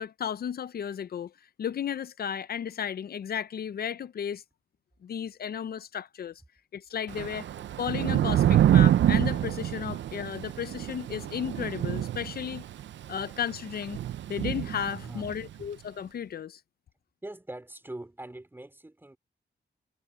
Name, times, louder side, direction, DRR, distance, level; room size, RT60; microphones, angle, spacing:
voice 1, 0.0-1.3 1.6-4.4 5.0-6.4 6.7-7.4 7.8-12.6 13.1-14.0 14.3-16.6, left 8 dB, 55° left, 0.5 m, -34 dB
Thunder / Rain, 7.1-15.5, right 11 dB, 75° right, 0.5 m, -26 dB
voice 2, 14.9-15.7 17.2-19.2, right 1 dB, 10° right, 3.3 m, -43 dB
wide cardioid pair, 145°, 19 cm